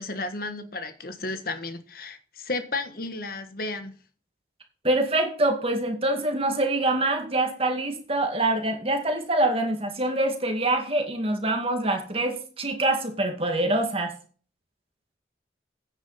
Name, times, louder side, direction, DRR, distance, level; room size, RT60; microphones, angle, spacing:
voice 1, 0.0-4.0, left 3 dB, 50° left, 1.3 m, -33 dB
voice 2, 4.8-14.1, right 2 dB, 30° right, 2.1 m, -25 dB
9.6 x 8.9 x 4.2 m
head